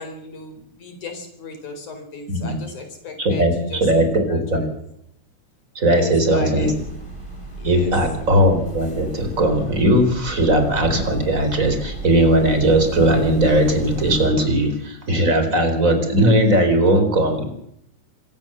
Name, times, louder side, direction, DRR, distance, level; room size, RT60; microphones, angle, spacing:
voice 1, 0.0-4.7 5.8-6.7 7.5-7.9, left 4 dB, 75° left, 6 dB, 6.0 m, -35 dB
voice 2, 3.2-4.6 5.7-6.7 7.6-17.4, right 1 dB, 25° right, 7 dB, 4.6 m, -18 dB
sound 1, 6.6-14.3, right 1 dB, 10° left, 4.3 m, -35 dB
26.0 x 15.0 x 7.7 m, 0.72 s
omnidirectional pair, 3.5 m